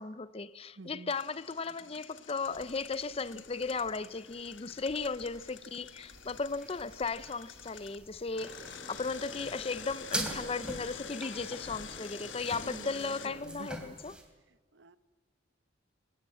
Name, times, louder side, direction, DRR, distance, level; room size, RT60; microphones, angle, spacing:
voice 1, 0.0-14.1, left 4 dB, 30° left, 0.5 m, -36 dB
voice 2, 0.8-1.1 12.6-13.7 14.5-15.0, right 3 dB, 65° right, 0.9 m, -49 dB
Engine, 1.1-8.0 8.4-13.3, left 9 dB, 75° left, 1.3 m, -49 dB
sound 1, 2.5-14.2, right 1 dB, 5° right, 3.1 m, -45 dB
sound 2, 8.3-13.4, left 1 dB, 55° left, 5.3 m, -49 dB
22.0 x 19.0 x 7.7 m
head